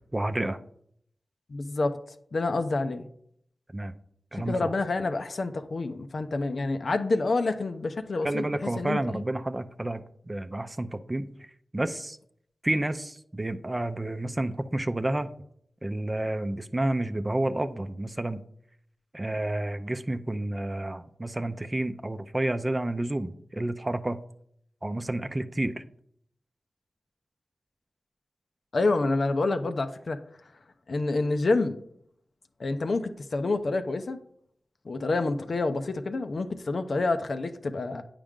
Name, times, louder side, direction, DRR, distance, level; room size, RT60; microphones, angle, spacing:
voice 1, 0.1-0.6 3.7-3.9 4.3-4.7 8.2-11.3 11.7-12.2 12.6-15.3 15.8-18.4 19.1-24.2 24.8-25.8, right 1 dB, 25° right, 0.6 m, -30 dB
voice 2, 1.5-2.0 2.3-3.1 4.4-9.2 28.7-30.2 30.9-31.8 32.6-34.2 34.8-38.0, left 3 dB, 65° left, 0.6 m, -28 dB
8.8 x 5.0 x 3.7 m
cardioid pair, 40°, 0 cm